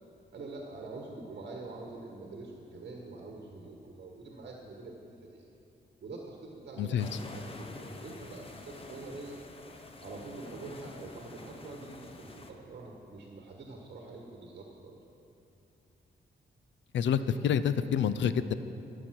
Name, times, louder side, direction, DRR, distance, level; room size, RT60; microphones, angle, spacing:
voice 1, 0.3-5.5 6.0-9.4 10.0-15.0, right 3 dB, 55° right, 0 dB, 1.3 m, -45 dB
voice 2, 6.8-7.1 16.9-18.5, left 8 dB, 85° left, 13 dB, 0.5 m, -28 dB
sound 1, 7.0-12.5, left 2 dB, 30° left, 0.8 m, -47 dB
14.0 x 6.9 x 6.0 m, 2.8 s
wide cardioid pair, 140°, 19 cm